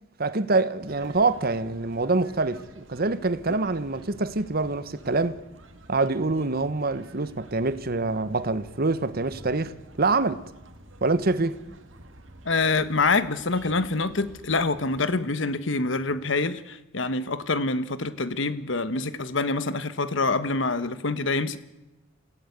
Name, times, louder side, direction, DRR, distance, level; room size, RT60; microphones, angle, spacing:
voice 1, 0.2-5.4 5.9-9.7 10.0-10.4 11.0-11.6, right 3 dB, 50° right, 1.1 m, -25 dB
sound 1, 0.9-15.0, right 1 dB, 75° right, 2.3 m, -49 dB
voice 2, 12.4-21.6, left 3 dB, 70° left, 1.3 m, -26 dB
27.5 x 16.5 x 8.2 m
head